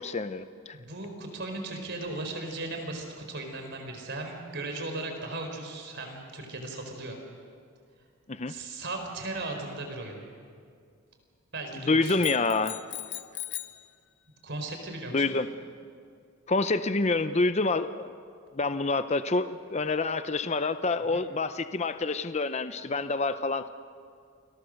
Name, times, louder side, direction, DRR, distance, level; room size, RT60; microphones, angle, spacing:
voice 1, 0.0-0.8 8.3-8.5 11.7-12.8 15.1-15.5 16.5-18.1 18.5-23.7, left 3 dB, 30° left, 11 dB, 0.6 m, -27 dB
voice 2, 0.7-7.2 8.5-10.2 11.5-12.2 14.4-15.4 21.1-21.2, right 2 dB, 55° right, 4 dB, 4.3 m, -37 dB
sound 1, 12.0-13.9, left 14 dB, 55° left, 0.9 m, -39 dB
29.5 x 22.0 x 6.5 m, 2.2 s
head